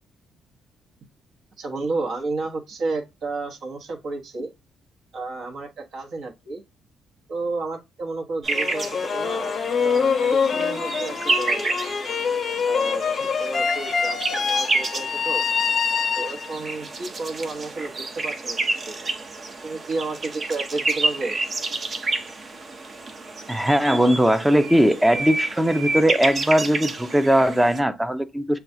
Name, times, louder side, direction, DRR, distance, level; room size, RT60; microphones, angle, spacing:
voice 1, 1.6-4.5 5.1-6.6 7.3-9.5 9.8-11.7 12.6-15.4 16.1-18.6 18.8-18.9 19.6-21.4, right 3 dB, 65° right, 1.0 m, -31 dB
sound 1, 8.4-27.8, right 3 dB, 40° right, 0.8 m, -30 dB
sound 2, 8.5-16.7, left 6 dB, 50° left, 0.5 m, -25 dB
voice 2, 23.5-28.6, equal, 10° right, 0.5 m, -19 dB
6.9 x 2.3 x 2.6 m
cardioid pair, 90°, 0 cm